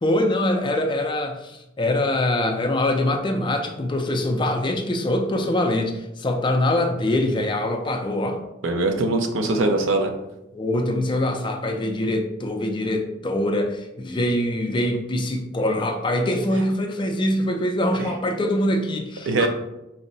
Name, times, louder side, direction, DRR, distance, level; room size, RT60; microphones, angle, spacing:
voice 1, 0.0-8.4 9.5-9.7 10.5-19.5, left 1 dB, 25° left, 4 dB, 0.4 m, -24 dB
voice 2, 8.6-10.1 18.0-18.1 19.3-19.5, right 2 dB, 70° right, 4 dB, 0.5 m, -22 dB
4.4 x 2.0 x 3.9 m, 0.91 s
head